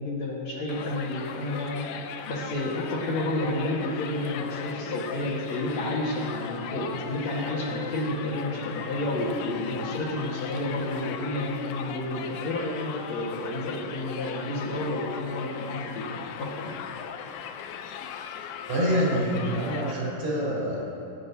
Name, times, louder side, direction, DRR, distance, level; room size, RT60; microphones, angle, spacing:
voice 1, 0.0-1.8 2.3-16.8, left 1 dB, 60° left, -4 dB, 2.4 m, -30 dB
Crowd, 0.7-19.9, left 8 dB, 85° left, 2.3 m, -38 dB
voice 2, 18.7-20.8, equal, 80° right, -6 dB, 4.4 m, -26 dB
19.5 x 8.5 x 2.7 m, 2.8 s
omnidirectional pair, 4.0 m